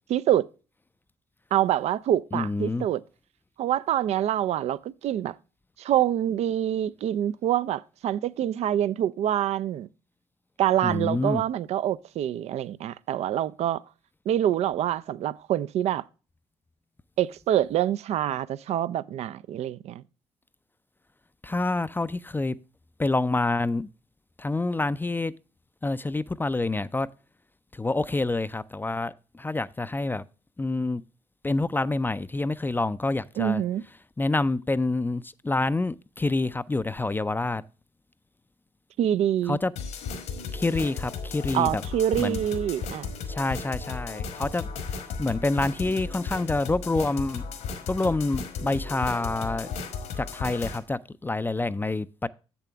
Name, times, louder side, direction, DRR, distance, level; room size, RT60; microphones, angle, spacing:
voice 1, 0.1-0.5 1.5-3.0 3.6-5.4 5.8-9.9 10.6-13.8 14.3-16.0 17.2-20.0 33.4-33.8 39.0-39.6 41.5-43.1, right 11 dB, 60° right, 0.4 m, -26 dB
voice 2, 2.3-2.9 10.8-11.4 21.4-22.6 23.0-23.9 24.4-25.3 25.8-27.1 27.7-30.2 30.6-31.0 31.4-33.6 34.2-37.6 39.5-39.7 40.5-41.8 42.2-42.4 43.3-44.7 45.2-47.4 47.9-49.7 50.2-52.3, left 2 dB, 15° left, 0.4 m, -27 dB
sound 1, 39.8-50.8, left 5 dB, 75° left, 1.4 m, -35 dB
7.4 x 7.0 x 3.4 m
hypercardioid pair, 50°, 12 cm